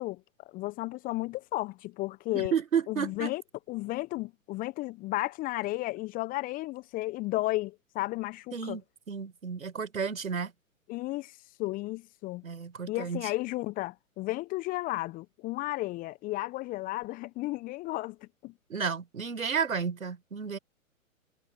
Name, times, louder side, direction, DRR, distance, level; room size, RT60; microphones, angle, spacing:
voice 1, 0.0-2.5 2.9-3.4 3.7-8.8 10.9-12.4 12.9-18.5, left 19 dB, 20° left, 0.8 m, -33 dB
voice 2, 2.3-3.3 8.5-8.8 9.1-10.5 12.4-13.3 18.7-20.6, right 6 dB, 75° right, 4.9 m, -32 dB
figure-of-eight pair, 115°, 41 cm